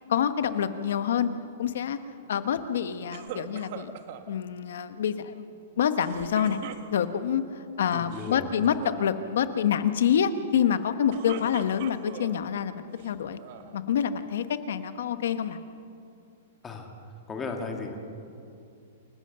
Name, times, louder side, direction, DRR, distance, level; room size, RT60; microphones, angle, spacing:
voice 1, 0.1-1.3 1.6-2.0 2.3-3.9 4.3-6.6 6.9-13.4 13.7-15.6, left 8 dB, 70° left, 11 dB, 1.3 m, -27 dB
sound 1, 3.1-4.3 6.0-7.3 8.0-8.4 8.6-9.0 10.9-12.4 13.0-13.7, right 9 dB, 40° right, 1.3 m, -41 dB
voice 2, 7.9-8.5 16.6-16.9 17.3-18.0, left 4 dB, 10° left, 2 dB, 2.1 m, -35 dB
28.0 x 15.5 x 6.9 m, 2.5 s
hypercardioid pair, 170°, 0 cm